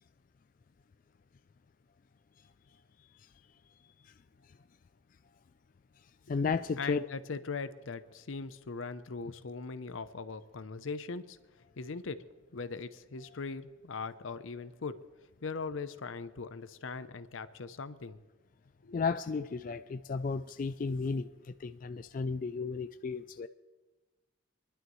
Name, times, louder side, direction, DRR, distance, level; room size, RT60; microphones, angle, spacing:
voice 1, 6.0-7.1 13.2-13.4 18.9-23.5, left 4 dB, 40° left, 10 dB, 0.3 m, -34 dB
voice 2, 6.8-11.4 11.8-12.2 12.5-15.0 15.4-18.2 18.8-19.0, left 4 dB, 75° left, 13 dB, 0.7 m, -40 dB
24.0 x 11.5 x 3.1 m, 1.2 s
head